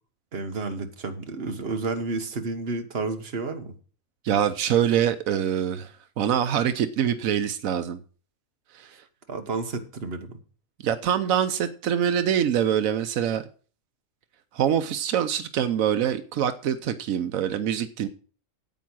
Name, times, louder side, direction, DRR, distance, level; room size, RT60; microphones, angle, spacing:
voice 1, 0.3-3.7 9.3-10.4, right 3 dB, 50° right, 1.6 m, -31 dB
voice 2, 4.2-8.0 8.7-9.0 10.8-13.5 14.5-18.1, right 9 dB, 85° right, 1.2 m, -24 dB
9.2 x 8.6 x 6.1 m
omnidirectional pair, 1.4 m